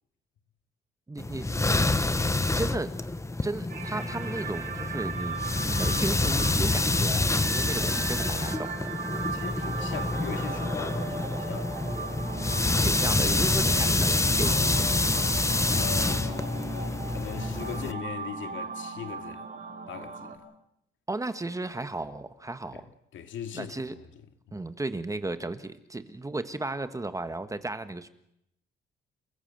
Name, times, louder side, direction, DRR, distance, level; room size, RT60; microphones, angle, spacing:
voice 1, 1.1-1.5 2.4-3.0 3.4-9.0 12.8-15.3 21.1-22.8 23.5-24.0 24.5-28.1, right 2 dB, 15° right, 1.5 m, -34 dB
sound 1, 1.2-17.9, left 2 dB, 15° left, 1.1 m, -27 dB
sound 2, 3.7-20.4, right 5 dB, 45° right, 6.7 m, -38 dB
voice 2, 9.3-12.2 15.7-19.5 19.9-20.4 22.7-22.8 23.1-24.0 24.5-24.6, left 9 dB, 75° left, 2.3 m, -40 dB
30.0 x 15.0 x 7.8 m
cardioid pair, 90°, 20 cm